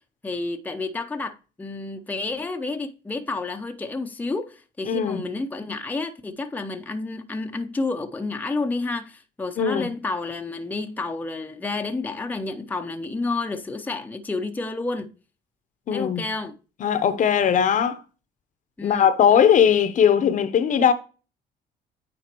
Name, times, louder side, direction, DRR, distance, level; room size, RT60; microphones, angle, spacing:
voice 1, 0.2-15.1 15.9-16.6 18.8-19.1, left 3 dB, 10° left, 0.6 m, -30 dB
voice 2, 4.9-5.2 9.6-9.9 15.9-16.2 16.8-18.0 18.8-20.9, left 8 dB, 50° left, 0.7 m, -19 dB
9.0 x 4.0 x 2.9 m
cardioid pair, 110°, 17 cm